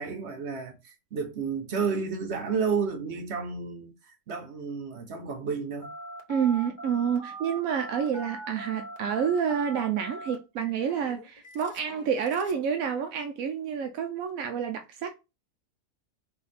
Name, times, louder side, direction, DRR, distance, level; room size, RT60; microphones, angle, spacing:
voice 1, 0.0-5.9, right 5 dB, 60° right, 1.0 m, -31 dB
Telephone, 5.8-12.7, right 1 dB, 40° left, 1.1 m, -42 dB
voice 2, 6.3-15.1, right 7 dB, 90° right, 1.1 m, -29 dB
4.6 x 2.6 x 4.1 m
omnidirectional pair, 1.4 m